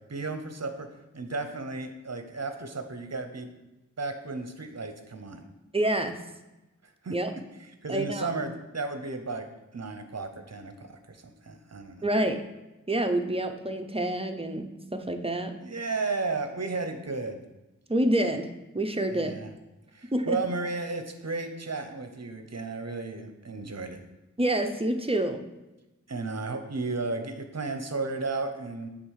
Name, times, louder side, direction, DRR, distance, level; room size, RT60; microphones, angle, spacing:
voice 1, 0.1-0.9 1.1-3.5 4.0-5.4 7.0-7.1 7.6-9.5 9.7-12.1 15.6-17.4 19.1-19.5 19.9-24.0 26.1-28.9, right 3 dB, 50° right, 7 dB, 0.8 m, -34 dB
voice 2, 5.7-6.2 7.1-7.3 7.9-8.4 12.0-12.4 12.9-15.5 17.9-18.5 18.7-19.3 20.1-20.4 24.4-25.4, right 1 dB, 15° right, 6 dB, 0.6 m, -27 dB
7.4 x 3.6 x 4.8 m, 1.0 s
wide cardioid pair, 45°, 33 cm